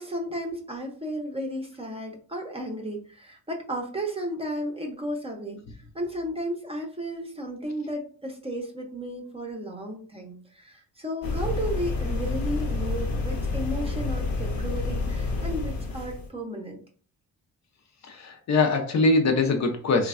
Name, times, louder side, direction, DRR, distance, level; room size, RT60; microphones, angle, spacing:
voice 1, 0.0-5.6 5.9-16.8, equal, 15° right, 2 dB, 0.6 m, -33 dB
sound 1, 11.2-16.3, left 3 dB, 75° left, 0.9 m, -29 dB
voice 2, 18.0-20.1, left 3 dB, 50° left, 5 dB, 0.6 m, -23 dB
3.1 x 2.1 x 2.4 m, 0.42 s
cardioid pair, 95°, 35 cm